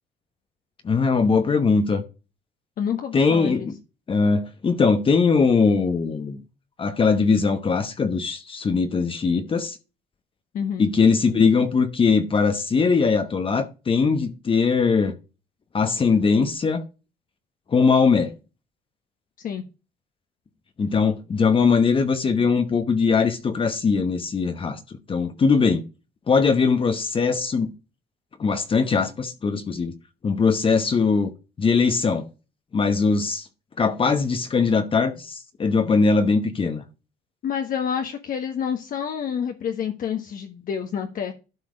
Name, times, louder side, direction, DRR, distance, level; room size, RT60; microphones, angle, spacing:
voice 1, 0.8-2.0 3.1-3.7 4.1-6.4 6.8-9.8 10.8-15.1 15.7-16.8 17.7-18.3 20.8-25.8 26.3-27.7 28.4-29.9 30.2-31.3 31.6-32.3 32.7-33.5 33.8-36.8, left 5 dB, 30° left, 1.1 m, -21 dB
voice 2, 2.8-3.7 10.5-10.9 19.4-19.6 37.4-41.3, left 7 dB, 55° left, 1.4 m, -28 dB
12.0 x 4.6 x 4.9 m
cardioid pair, 110°, 17 cm